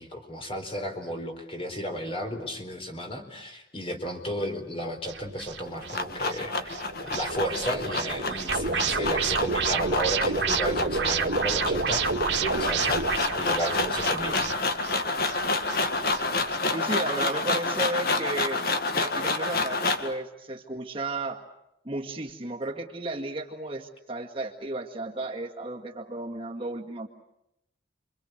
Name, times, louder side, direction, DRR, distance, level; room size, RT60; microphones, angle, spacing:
voice 1, 0.0-12.0 12.4-14.6, equal, 30° left, 4 dB, 4.2 m, -33 dB
sound 1, 5.1-16.6, right 5 dB, 70° right, 2.0 m, -30 dB
sound 2, 5.5-20.1, left 3 dB, 55° left, 1.9 m, -29 dB
voice 2, 16.7-18.6 18.9-21.4 21.8-27.1, right 2 dB, 30° right, 1 dB, 1.9 m, -33 dB
29.5 x 24.5 x 8.0 m, 0.84 s
head